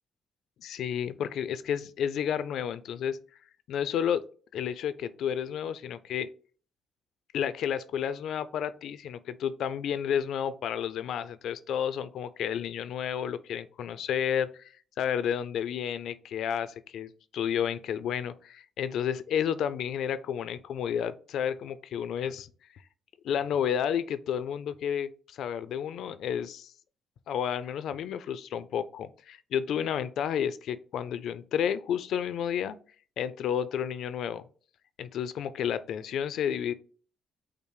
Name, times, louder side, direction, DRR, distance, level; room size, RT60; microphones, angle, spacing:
voice 1, 0.6-3.2 3.7-4.2 4.5-6.3 7.3-14.7 15.0-22.5 23.2-26.7 27.3-32.8 33.2-34.4 35.0-36.7, left 8 dB, 75° left, 14 dB, 0.4 m, -31 dB
5.4 x 2.0 x 4.8 m, 0.40 s
cardioid pair, 90°, 0 cm